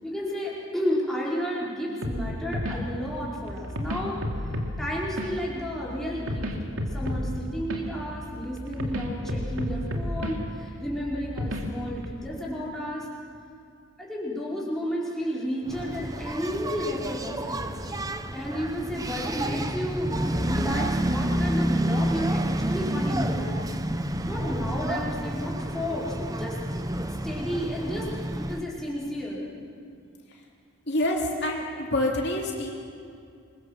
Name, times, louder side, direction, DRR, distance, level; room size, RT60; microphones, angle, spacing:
voice 1, 0.0-4.5 4.8-6.5 6.9-13.1 14.0-17.9 18.3-20.1 20.5-23.6 24.3-26.6 27.2-28.1 28.3-29.5, equal, ahead, -6 dB, 5.0 m, -32 dB
sound 1, 2.0-12.1, equal, 75° right, 2.8 m, -33 dB
Engine, 15.7-28.7, right 1 dB, 15° right, 0.9 m, -29 dB
voice 2, 30.9-32.7, left 1 dB, 50° left, -1 dB, 2.9 m, -27 dB
27.0 x 22.5 x 7.5 m, 2.4 s
head